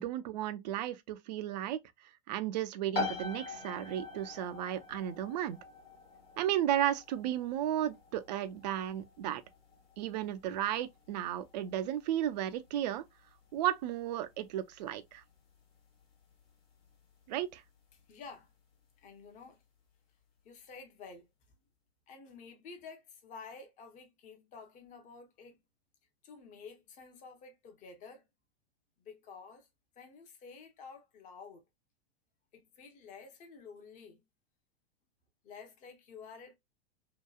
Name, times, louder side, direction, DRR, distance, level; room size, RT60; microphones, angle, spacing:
voice 1, 0.0-1.8 2.3-5.6 6.4-9.4 10.0-13.0 13.5-15.2 17.3-17.6, right 11 dB, 45° right, 0.4 m, -34 dB
sound 1, 2.9-17.4, left 3 dB, 70° left, 1.2 m, -45 dB
voice 2, 17.9-18.5 19.0-19.6 20.4-21.3 22.1-25.6 26.2-28.2 29.0-29.7 30.0-31.6 32.5-34.2 35.4-36.6, left 5 dB, 25° left, 0.7 m, -51 dB
2.8 x 2.2 x 2.3 m
figure-of-eight pair, 95°, 32 cm